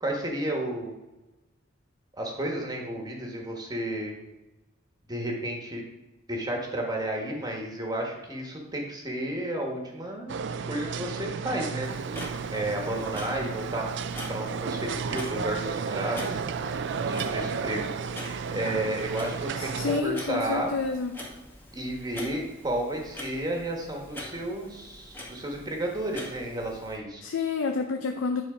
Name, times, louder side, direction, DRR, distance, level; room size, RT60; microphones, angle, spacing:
voice 1, 0.0-0.9 2.1-4.1 5.1-5.8 6.3-10.3 10.7-11.9 12.5-13.9 14.3-16.3 17.0-17.9 18.5-20.7 21.7-27.2, right 1 dB, 20° right, 0 dB, 1.4 m, -32 dB
sound 1, 10.3-20.0, right 5 dB, 60° right, 0.4 m, -33 dB
Clock, 11.8-27.0, left 1 dB, 10° left, 1.5 m, -44 dB
voice 2, 19.6-21.2 27.2-28.4, left 4 dB, 70° left, 5 dB, 0.6 m, -29 dB
9.5 x 4.3 x 5.0 m, 1.1 s
head